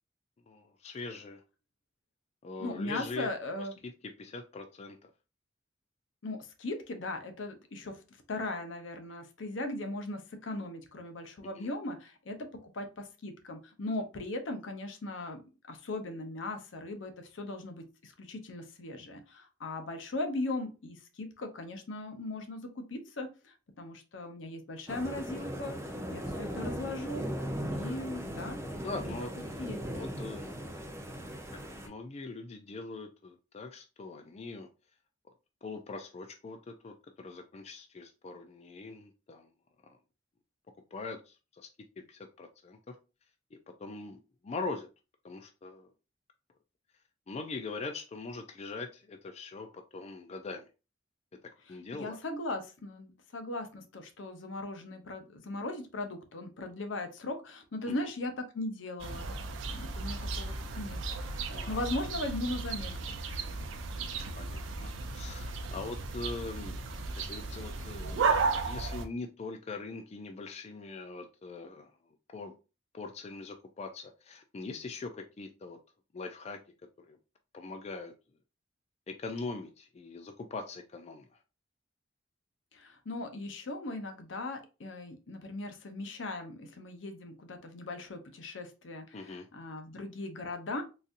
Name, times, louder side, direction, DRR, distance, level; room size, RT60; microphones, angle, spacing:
voice 1, 0.5-1.4 2.4-3.3 3.6-3.7 4.2-5.1 11.4-11.7 28.2-28.5 28.7-29.5 29.9-30.5 31.5-34.7 35.6-39.5 39.8-40.0 40.9-41.7 42.0-42.9 43.8-44.9 45.2-45.9 47.3-50.7 51.7-52.2 57.9-58.1 61.5-61.8 63.5-63.8 64.4-66.8 67.2-71.9 72.3-72.5 72.9-75.8 76.1-76.6 77.0-77.2 77.5-78.1 79.1-81.3 89.1-89.5, left 3 dB, 35° left, 6 dB, 0.3 m, -42 dB
voice 2, 2.6-3.7 6.2-8.0 8.3-12.4 12.7-15.4 15.7-25.7 26.1-27.2 27.7-28.6 29.6-29.8 51.9-59.3 59.7-61.0 61.7-63.2 82.7-90.8, left 2 dB, 80° left, 6 dB, 0.7 m, -38 dB
sound 1, 24.9-31.9, equal, 15° right, 0.6 m, -38 dB
sound 2, 59.0-69.0, right 4 dB, 90° right, 0.5 m, -34 dB
3.9 x 2.6 x 2.5 m, 0.31 s
head